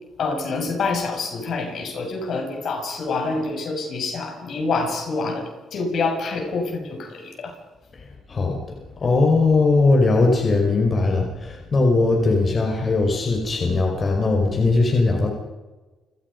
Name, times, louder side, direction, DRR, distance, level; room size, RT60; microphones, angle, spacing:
voice 1, 0.2-7.6, left 3 dB, 65° left, 3 dB, 6.8 m, -26 dB
voice 2, 7.9-15.3, left 3 dB, 40° left, 1 dB, 5.1 m, -20 dB
29.5 x 17.5 x 5.4 m, 1.2 s
cardioid pair, 90°, 0 cm